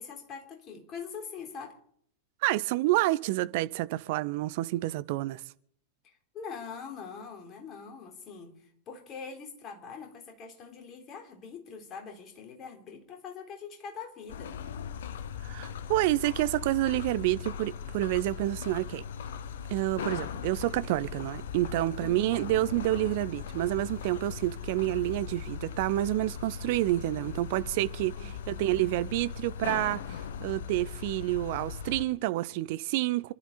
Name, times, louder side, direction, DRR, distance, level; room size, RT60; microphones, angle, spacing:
voice 1, 0.0-1.8 6.0-14.5 22.0-22.3 28.2-28.9, left 6 dB, 30° left, 3.8 m, -43 dB
voice 2, 2.4-5.4 15.4-19.0 19.7-33.3, right 17 dB, 50° right, 0.7 m, -29 dB
sound 1, 14.3-32.0, left 7 dB, 60° left, 1.0 m, -39 dB
27.5 x 12.0 x 4.2 m
figure-of-eight pair, 90°, 0 cm